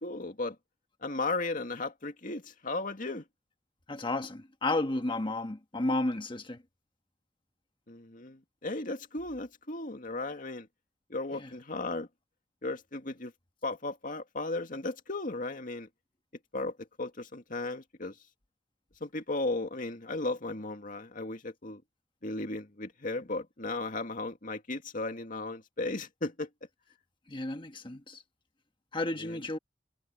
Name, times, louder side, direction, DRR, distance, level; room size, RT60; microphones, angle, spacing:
voice 1, 0.0-0.6 1.0-3.2 7.9-10.7 11.1-12.1 12.6-13.3 13.6-15.9 16.5-18.2 19.0-21.8 22.2-26.5 29.2-29.4, left 2 dB, 50° left, 2.3 m, -35 dB
voice 2, 3.9-6.6 11.3-11.5 27.3-28.2 28.9-29.6, left 2 dB, 30° left, 1.4 m, -32 dB
head